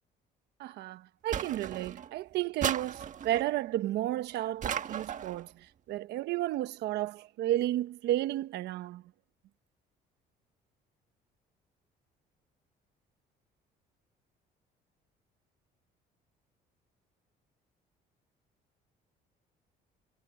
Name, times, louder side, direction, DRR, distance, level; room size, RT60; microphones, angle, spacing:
voice 1, 0.6-9.0, right 14 dB, 80° right, 1.2 m, -32 dB
sound 1, 1.3-2.1 2.6-3.5 4.6-5.4, right 8 dB, 50° right, 1.5 m, -35 dB
cardioid pair, 110°, 17 cm